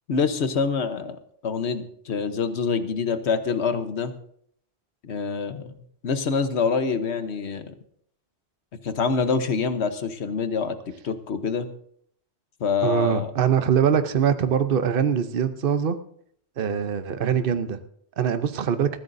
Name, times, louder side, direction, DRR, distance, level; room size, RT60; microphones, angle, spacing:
voice 1, 0.1-1.2 1.4-4.2 5.0-5.7 6.0-7.7 8.8-10.8 11.0-11.7 12.6-13.3, left 5 dB, 85° left, 9 dB, 1.3 m, -26 dB
voice 2, 12.8-16.0 16.6-17.8 18.2-18.9, right 8 dB, 60° right, 10 dB, 1.0 m, -23 dB
20.5 x 15.0 x 2.7 m, 0.65 s
omnidirectional pair, 1.1 m